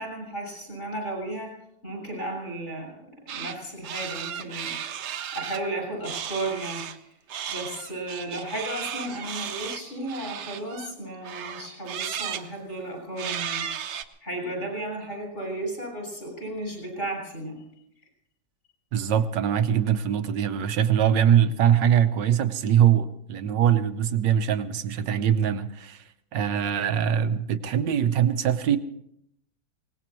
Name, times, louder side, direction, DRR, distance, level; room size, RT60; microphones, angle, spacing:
voice 1, 0.0-1.5 1.8-3.0 3.3-6.8 7.5-13.7 14.2-17.6, right 1 dB, 40° left, 0 dB, 7.1 m, -34 dB
sound 1, 3.3-3.6 3.8-5.6 6.0-7.0 7.3-10.9 11.2-12.5 13.2-14.0, right 8 dB, 70° right, 1.4 m, -34 dB
voice 2, 18.9-26.0 26.3-28.8, right 9 dB, 90° right, 10 dB, 1.6 m, -22 dB
24.0 x 19.0 x 3.1 m, 0.73 s
omnidirectional pair, 1.9 m